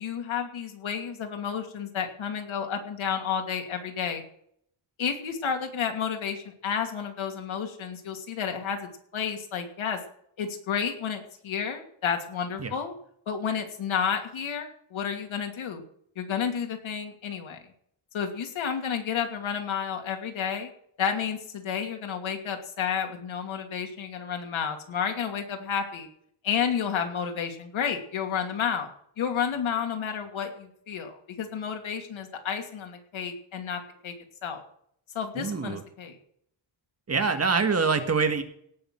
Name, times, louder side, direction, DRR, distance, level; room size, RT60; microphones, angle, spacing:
voice 1, 0.0-4.2 5.0-8.8 9.1-10.0 10.4-12.9 13.3-15.8 16.2-17.6 18.1-20.7 21.0-26.1 26.4-28.9 29.2-34.1 34.4-34.6 35.1-36.2, left 7 dB, 80° left, 4 dB, 2.8 m, -31 dB
voice 2, 35.4-35.8 37.1-38.4, right 4 dB, 30° right, 7 dB, 1.6 m, -25 dB
18.0 x 6.5 x 7.6 m, 0.68 s
wide cardioid pair, 135°, 47 cm